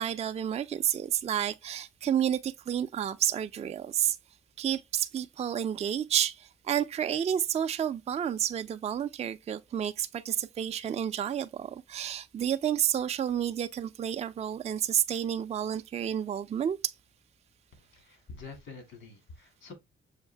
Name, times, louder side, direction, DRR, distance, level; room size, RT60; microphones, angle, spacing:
voice 1, 0.0-4.2 4.6-16.9, right 10 dB, 35° right, 0.4 m, -30 dB
voice 2, 17.8-19.7, left 4 dB, 70° left, 2.1 m, -47 dB
6.4 x 2.5 x 3.3 m
cardioid pair, 90°, 20 cm